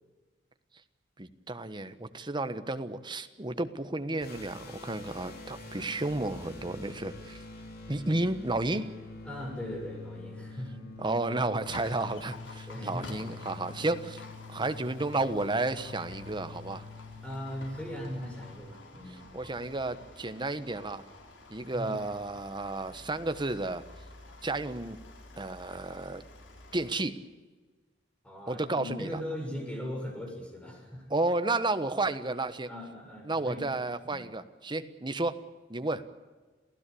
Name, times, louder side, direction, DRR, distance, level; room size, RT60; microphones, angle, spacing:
voice 1, 1.2-7.4 7.9-8.9 11.0-14.2 14.5-16.8 19.3-21.0 21.5-23.8 24.4-25.0 25.4-26.2 26.7-27.2 28.5-29.2 31.1-32.7 33.2-35.3 35.7-36.0, right 2 dB, 25° right, 10 dB, 1.3 m, -32 dB
sound 1, 4.2-18.5, left 3 dB, 55° left, 4.6 m, -46 dB
voice 2, 9.2-10.9 12.7-14.0 17.2-19.2 21.7-22.0 28.2-31.1 32.7-33.7 34.0-34.3, left 1 dB, 5° left, 2 dB, 7.0 m, -39 dB
Livestock farm animals working animals, 11.6-26.9, left 2 dB, 80° left, 4.1 m, -50 dB
28.0 x 16.0 x 8.5 m, 1.4 s
head